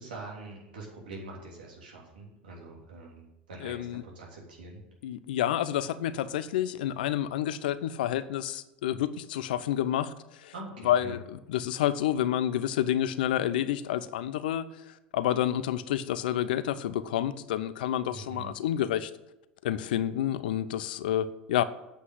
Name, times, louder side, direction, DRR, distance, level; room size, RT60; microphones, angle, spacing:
voice 1, 0.0-4.8 10.5-11.1 18.1-18.5, right 2 dB, 80° right, -2 dB, 3.2 m, -44 dB
voice 2, 3.6-4.0 5.0-10.1 10.4-10.5 10.8-14.7 15.1-19.1 19.6-21.6, left 11 dB, 75° left, 14 dB, 0.6 m, -29 dB
8.6 x 5.6 x 7.8 m, 0.95 s
hypercardioid pair, 85°, 5 cm